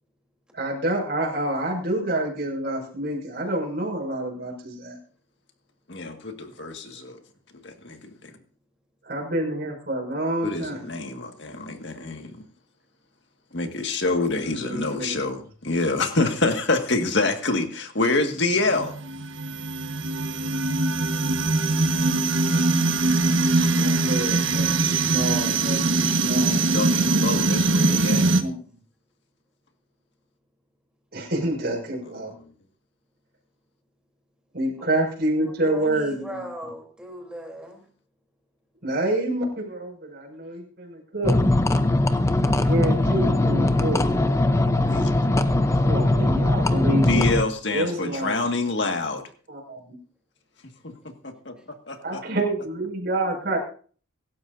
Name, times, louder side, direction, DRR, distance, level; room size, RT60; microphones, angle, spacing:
voice 1, 0.5-5.0 9.0-10.9 14.4-15.2 23.2-26.8 27.9-28.5 31.1-32.3 34.5-36.4 38.8-41.3 42.6-44.0 45.8-47.4 47.7-48.5 49.5-49.9 52.0-53.6, right 1 dB, 50° right, 0 dB, 5.9 m, -28 dB
voice 2, 5.9-7.2 7.6-8.3 10.4-12.4 13.5-18.9 26.5-28.3 44.9-45.1 47.1-49.2 50.8-50.9 51.2-51.5 51.9-52.2, left 3 dB, 55° left, 5 dB, 1.9 m, -26 dB
sound 1, 18.6-28.4, right 3 dB, 70° right, 1.4 m, -22 dB
voice 3, 35.5-37.8 51.6-51.7, equal, 5° right, 1 dB, 3.4 m, -38 dB
sound 2, 41.2-47.4, left 2 dB, 15° left, 0.6 m, -20 dB
24.5 x 12.5 x 2.7 m, 0.43 s
head